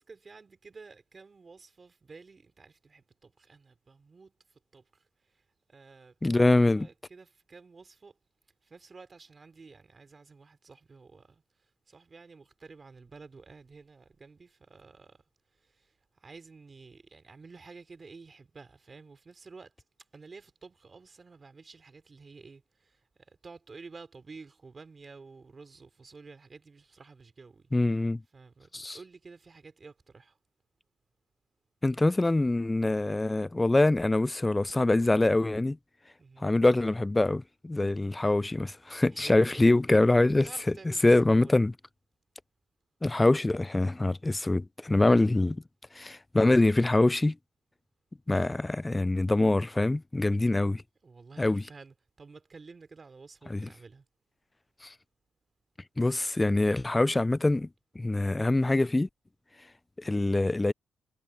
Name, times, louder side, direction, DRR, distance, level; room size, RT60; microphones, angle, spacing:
voice 1, 0.0-8.2 8.6-15.2 15.5-19.7 20.1-27.7 28.3-30.4 36.2-36.5 39.1-39.8 40.3-41.6 51.0-54.0, right 4 dB, 35° right, 3.1 m, -51 dB
voice 2, 6.2-6.9 27.7-28.2 28.7-29.0 31.8-35.8 36.4-40.5 41.0-41.7 43.0-45.6 46.0-47.4 48.3-50.8 51.4-51.6 53.5-53.7 54.8-54.9 56.0-57.7 58.0-59.1 60.0-60.7, left 2 dB, 15° left, 0.3 m, -24 dB
cardioid pair, 90°, 0 cm